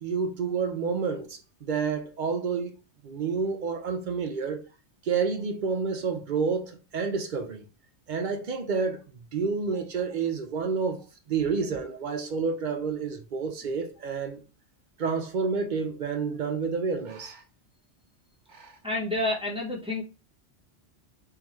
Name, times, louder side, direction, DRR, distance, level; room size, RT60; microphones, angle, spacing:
voice 1, 0.0-2.7 3.0-4.6 5.0-7.6 8.1-9.0 9.3-11.0 11.3-14.4 15.0-17.4 18.5-18.7, right 5 dB, 55° right, 0.6 m, -29 dB
voice 2, 18.8-20.0, left 2 dB, 5° right, 0.8 m, -29 dB
3.9 x 2.7 x 3.0 m
omnidirectional pair, 1.2 m